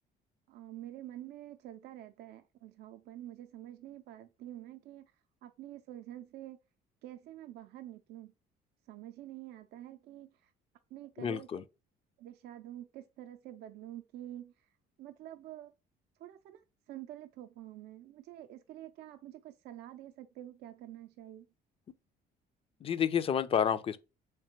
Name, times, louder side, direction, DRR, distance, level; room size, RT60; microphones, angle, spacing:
voice 1, 0.5-5.1 5.4-6.6 7.0-8.3 8.9-10.5 10.9-11.6 12.2-14.5 15.0-15.7 16.2-21.5, right 13 dB, 70° right, 0.4 m, -48 dB
voice 2, 11.2-11.6 22.8-24.0, left 8 dB, 35° left, 0.4 m, -30 dB
3.6 x 3.3 x 2.8 m
cardioid pair, 110°, 17 cm